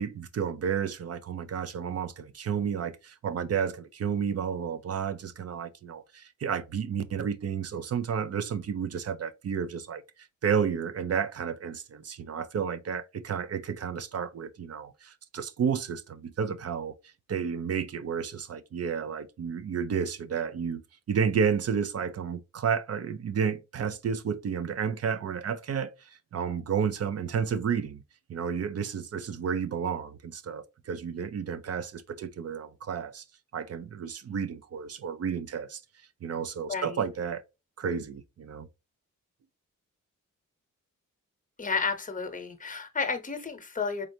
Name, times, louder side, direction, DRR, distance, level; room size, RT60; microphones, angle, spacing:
voice 1, 0.0-10.0 10.4-16.9 17.3-20.8 21.1-28.0 28.3-33.2 33.5-35.8 36.2-37.4 37.8-38.7, right 7 dB, 50° right, 0.5 m, -31 dB
voice 2, 36.7-37.0 41.6-44.1, left 5 dB, 25° left, 0.9 m, -31 dB
3.9 x 3.1 x 2.7 m
cardioid pair, 90°, 32 cm